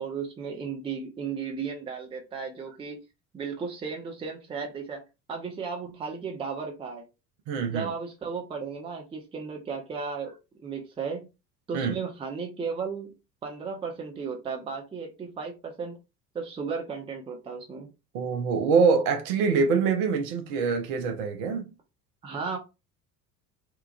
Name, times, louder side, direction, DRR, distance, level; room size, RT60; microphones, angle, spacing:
voice 1, 0.0-3.0 3.3-5.0 5.3-7.0 7.7-11.3 11.7-13.1 13.4-16.0 16.3-17.9 22.2-22.6, right 5 dB, 10° right, 0.5 m, -35 dB
voice 2, 7.5-7.9 11.7-12.0 18.1-21.7, right 5 dB, 50° right, 0.7 m, -24 dB
2.9 x 2.3 x 2.3 m
figure-of-eight pair, 65°, 48 cm